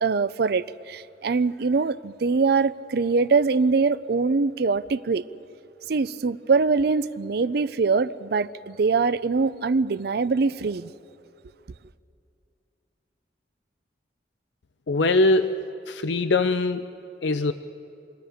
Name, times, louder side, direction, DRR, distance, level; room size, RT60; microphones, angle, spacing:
voice 1, 0.0-5.2 5.9-10.9, right 4 dB, 60° right, 0.5 m, -23 dB
voice 2, 14.9-16.8 17.2-17.5, left 2 dB, 80° left, 0.6 m, -22 dB
28.0 x 21.0 x 5.0 m
head